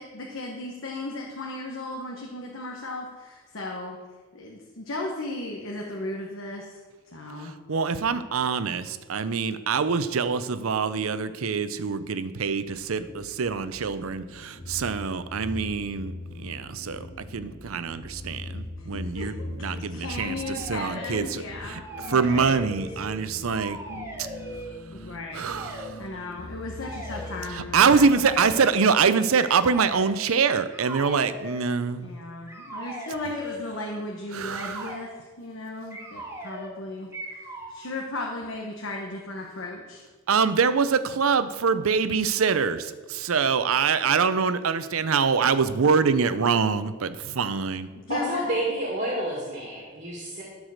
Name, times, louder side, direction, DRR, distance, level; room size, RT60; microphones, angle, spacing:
voice 1, 0.0-4.0 4.3-6.8 7.1-7.5 18.9-19.5 19.9-22.5 23.9-24.1 24.9-25.5 25.9-28.1 32.0-37.1 37.7-40.0 47.9-48.5, left 2 dB, 65° left, -1 dB, 1.2 m, -36 dB
voice 2, 7.7-17.1 17.3-21.8 22.1-23.8 24.2-24.3 25.3-25.9 27.5-32.1 34.3-34.9 40.3-47.9, right 5 dB, 75° right, 13 dB, 0.6 m, -25 dB
sound 1, 12.6-28.4, left 1 dB, 35° left, 1.0 m, -41 dB
sound 2, 20.4-21.3 21.7-23.2 23.4-24.7 25.5-25.9 26.8-27.4 28.1-28.9 29.4-30.2 30.7-31.6 32.5-33.7 34.5-35.1 35.9-36.8 37.1-37.8, equal, 15° right, 1.8 m, -39 dB
voice 3, 48.1-50.4, right 1 dB, 35° right, -3 dB, 2.0 m, -29 dB
12.5 x 4.8 x 6.4 m, 1.4 s
head